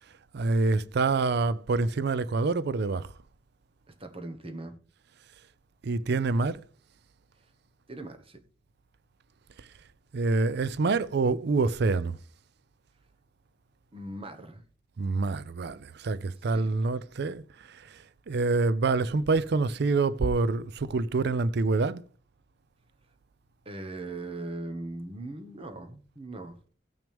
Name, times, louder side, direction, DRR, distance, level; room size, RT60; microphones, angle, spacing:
voice 1, 0.3-3.1 5.8-6.6 10.1-12.2 15.0-17.4 18.3-22.0, right 3 dB, 60° right, 0.5 m, -26 dB
voice 2, 3.9-4.8 7.9-8.4 13.9-14.6 16.5-16.7 23.6-26.7, right 2 dB, 30° right, 1.2 m, -40 dB
16.0 x 6.0 x 3.5 m
head